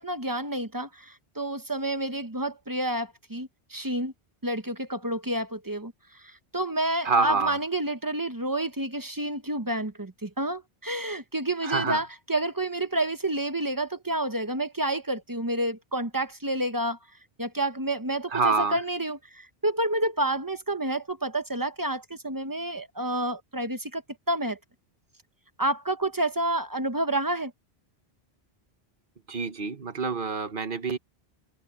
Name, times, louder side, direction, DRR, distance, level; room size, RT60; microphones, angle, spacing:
voice 1, 0.0-4.1 4.4-17.0 17.4-24.0 24.3-24.6 25.6-27.5, right 1 dB, 20° right, 1.0 m, -29 dB
voice 2, 7.0-7.6 11.6-12.0 18.3-18.8 29.3-31.0, right 4 dB, 55° right, 1.5 m, -26 dB
omnidirectional pair, 1.1 m